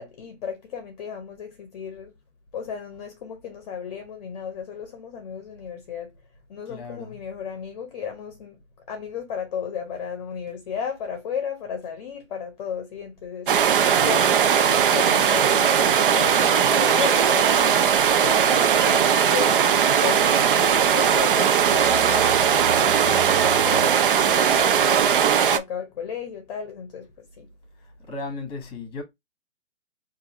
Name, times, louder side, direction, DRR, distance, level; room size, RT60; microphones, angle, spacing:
voice 1, 0.0-2.1 2.5-6.2 6.5-8.6 8.9-27.5, left 7 dB, 35° left, 0.7 m, -34 dB
voice 2, 6.6-7.2 27.8-29.0, left 3 dB, 15° left, 1.2 m, -36 dB
sound 1, 13.5-25.6, right 8 dB, 50° right, 0.5 m, -19 dB
4.5 x 2.6 x 2.9 m
hypercardioid pair, 145°, 35 cm